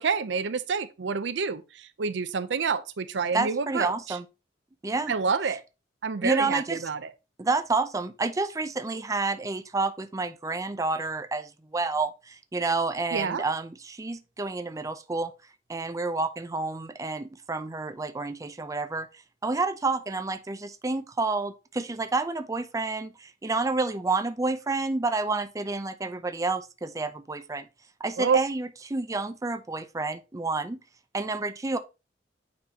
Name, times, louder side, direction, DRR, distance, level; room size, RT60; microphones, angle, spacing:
voice 1, 0.0-4.2 5.1-5.6 6.0-7.1 13.1-13.4 28.2-28.4, right 5 dB, 75° right, 0.5 m, -28 dB
voice 2, 3.3-4.2 4.8-5.1 6.2-6.8 7.4-15.3 15.7-19.1 19.4-27.7 28.0-30.8 31.1-31.8, right 3 dB, 20° right, 0.5 m, -29 dB
8.9 x 4.4 x 2.8 m
head